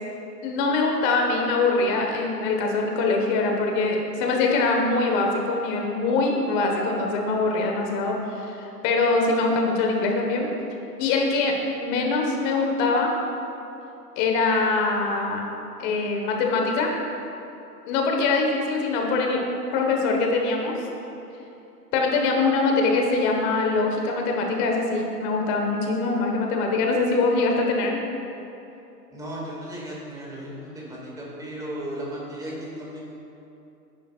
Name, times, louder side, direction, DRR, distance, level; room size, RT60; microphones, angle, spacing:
voice 1, 0.4-10.5 11.0-13.1 14.2-15.5 15.8-16.9 17.8-19.4 19.7-20.8 21.9-28.0, left 3 dB, 30° left, 1 dB, 1.5 m, -23 dB
voice 2, 29.1-33.0, equal, 5° right, -5 dB, 2.1 m, -35 dB
15.0 x 10.5 x 2.5 m, 2.8 s
hypercardioid pair, 130°, 49 cm